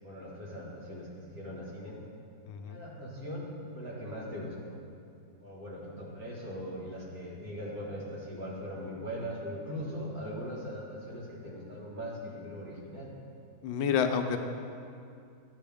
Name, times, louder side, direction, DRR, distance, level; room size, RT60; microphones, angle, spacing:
voice 1, 0.0-2.0 2.6-4.8 5.4-13.1, equal, 50° right, -5 dB, 2.0 m, -40 dB
voice 2, 2.5-2.8 13.6-14.4, left 7 dB, 80° left, 6 dB, 1.3 m, -29 dB
11.0 x 8.4 x 3.5 m, 2.4 s
omnidirectional pair, 2.1 m